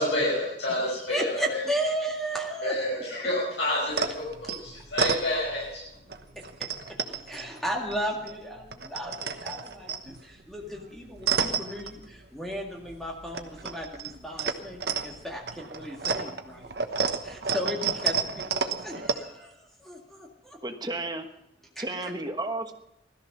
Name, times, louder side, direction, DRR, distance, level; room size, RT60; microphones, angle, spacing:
voice 1, 0.0-1.6 2.6-4.0 4.4-5.8, left 1 dB, 80° left, -5 dB, 5.6 m, -28 dB
voice 2, 1.0-3.0 6.4-16.7 17.2-20.6 21.8-22.1, equal, ahead, -1 dB, 1.9 m, -35 dB
sound 1, 3.9-5.8 6.1-8.3 8.6-12.6 12.8-19.1, right 6 dB, 65° right, 1.1 m, -31 dB
voice 3, 20.6-21.3 21.8-22.7, right 2 dB, 25° right, 6 dB, 1.2 m, -32 dB
17.0 x 13.5 x 6.0 m, 0.86 s
head